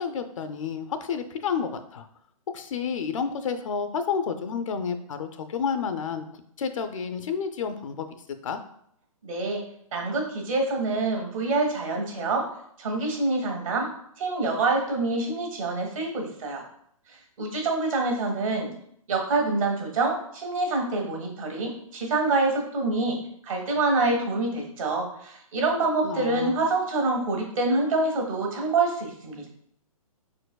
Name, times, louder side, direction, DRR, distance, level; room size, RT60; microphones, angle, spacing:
voice 1, 0.0-2.1 2.5-6.3 6.6-8.1 8.4-8.6 26.0-26.5, left 6 dB, 60° left, 9 dB, 0.5 m, -30 dB
voice 2, 9.2-9.6 9.9-12.5 12.8-13.9 14.2-16.6 17.1-18.7 19.1-23.2 23.4-29.5, right 3 dB, 65° right, 1 dB, 1.5 m, -26 dB
4.5 x 4.5 x 2.3 m, 0.69 s
hypercardioid pair, 160°, 18 cm